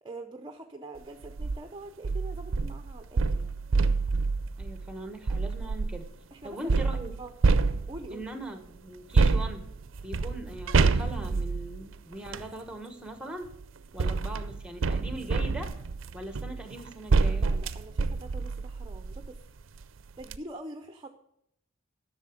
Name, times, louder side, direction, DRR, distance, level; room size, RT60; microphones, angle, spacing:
voice 1, 0.0-3.5 6.3-6.9 7.2-7.3 7.9-8.2 17.3-19.4 20.2-21.1, right 2 dB, 20° right, 6 dB, 0.6 m, -44 dB
sound 1, 1.2-1.6 2.0-6.1 6.7-8.2 9.1-12.5 13.5-19.4 19.8-19.9 20.2-20.4, right 4 dB, 65° right, 0.5 m, -27 dB
voice 2, 4.6-6.1 6.4-7.1 8.1-9.6 10.0-13.5 13.9-15.7 16.1-17.5, right 1 dB, 5° right, 6 dB, 1.1 m, -40 dB
11.0 x 6.9 x 5.7 m, 0.76 s
head